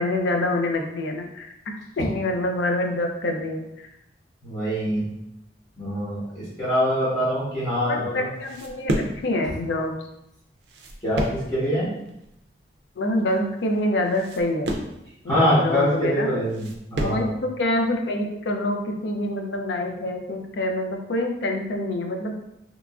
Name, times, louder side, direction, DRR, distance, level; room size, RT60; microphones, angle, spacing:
voice 1, 0.0-1.5 2.0-3.9 7.9-9.9 13.0-14.8 15.2-16.3 17.0-22.3, left 1 dB, 70° left, 3 dB, 0.4 m, -26 dB
voice 2, 4.4-5.0 5.8-8.1 11.0-11.9 15.3-16.7 16.9-17.3, equal, 20° left, -12 dB, 1.0 m, -24 dB
sound 1, 8.0-17.3, right 1 dB, 65° right, 0.4 m, -32 dB
2.9 x 2.4 x 2.3 m, 0.82 s
head